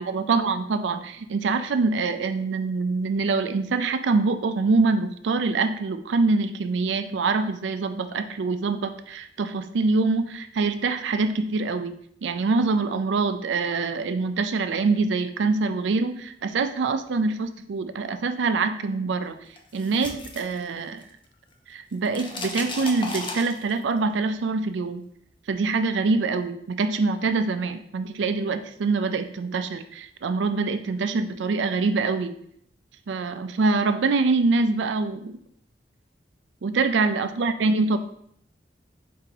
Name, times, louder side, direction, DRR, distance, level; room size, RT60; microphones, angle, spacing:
voice 1, 0.0-11.9 12.2-19.4 19.7-21.0 21.7-25.0 25.5-32.3 33.1-35.3 36.6-38.0, right 3 dB, 90° right, 10 dB, 0.4 m, -24 dB
sound 1, 19.6-21.3 21.5-24.0, left 2 dB, 30° left, 0.5 m, -35 dB
4.6 x 2.8 x 3.8 m, 0.68 s
head